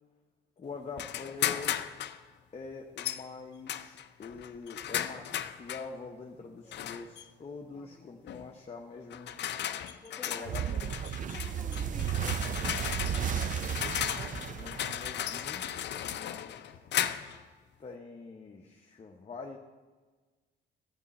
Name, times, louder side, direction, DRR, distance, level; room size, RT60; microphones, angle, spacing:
voice 1, 0.6-1.8 2.5-9.4 10.3-10.8 14.2-16.8 17.8-19.6, left 4 dB, 30° left, 1 dB, 0.9 m, -45 dB
sound 1, 1.0-2.2 3.0-3.2 3.7-5.9 6.7-7.2 8.3-8.5 9.1-17.4, left 10 dB, 60° left, 0.5 m, -35 dB
voice 2, 6.4-6.9 7.7-8.2 9.9-13.8, left 2 dB, 5° left, 0 dB, 1.1 m, -52 dB
sound 2, 10.4-15.6, right 9 dB, 40° right, 0.4 m, -34 dB
11.5 x 8.8 x 4.2 m, 1.4 s
cardioid pair, 90°, 20 cm